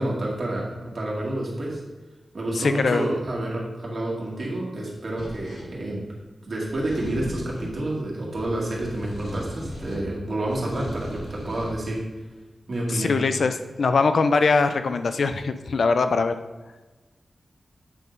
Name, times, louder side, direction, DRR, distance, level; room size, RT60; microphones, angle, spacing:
voice 1, 0.0-1.8 2.3-6.0 6.5-12.0 12.7-13.2, right 1 dB, 50° right, -4 dB, 2.0 m, -29 dB
voice 2, 2.6-3.1 12.9-16.3, left 4 dB, 65° left, 9 dB, 0.4 m, -22 dB
sound 1, 5.1-5.7 6.7-7.8 8.3-10.1 10.4-11.8, equal, 85° left, 2.0 m, -37 dB
8.3 x 3.7 x 5.1 m, 1.2 s
wide cardioid pair, 160°, 0 cm